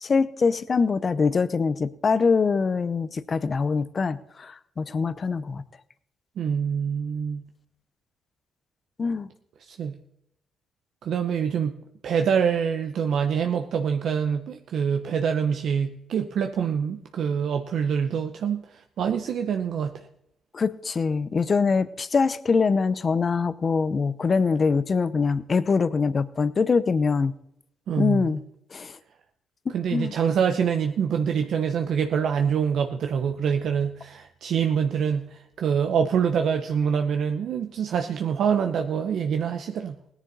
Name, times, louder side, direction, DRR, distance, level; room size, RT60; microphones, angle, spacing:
voice 1, 0.0-5.6 9.0-9.3 20.5-27.3 28.0-28.4 28.7-29.0 29.7-30.1, left 5 dB, 40° left, 16 dB, 0.7 m, -24 dB
voice 2, 6.4-7.4 9.7-10.0 11.0-11.8 12.0-20.1 27.9-28.3 29.7-39.9, right 7 dB, 65° right, 6 dB, 0.8 m, -25 dB
17.5 x 10.0 x 4.1 m, 0.77 s
cardioid pair, 90°, 0 cm